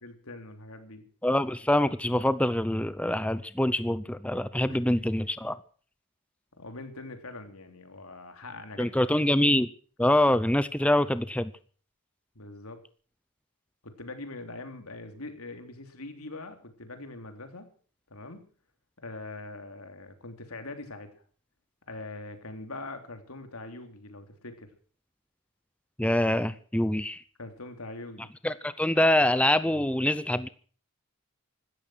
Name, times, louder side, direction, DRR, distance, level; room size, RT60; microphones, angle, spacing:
voice 1, 0.0-1.1 4.7-4.8 6.6-9.2 10.0-10.1 12.3-12.8 13.8-17.7 18.1-18.5 19.0-21.2 21.9-24.7 27.4-28.3, left 2 dB, 90° left, 6 dB, 3.3 m, -42 dB
voice 2, 1.2-5.5 8.8-9.7 10.0-11.5 26.0-27.2 28.4-30.5, left 1 dB, 5° left, 14 dB, 0.6 m, -25 dB
16.0 x 13.5 x 6.3 m, 0.43 s
head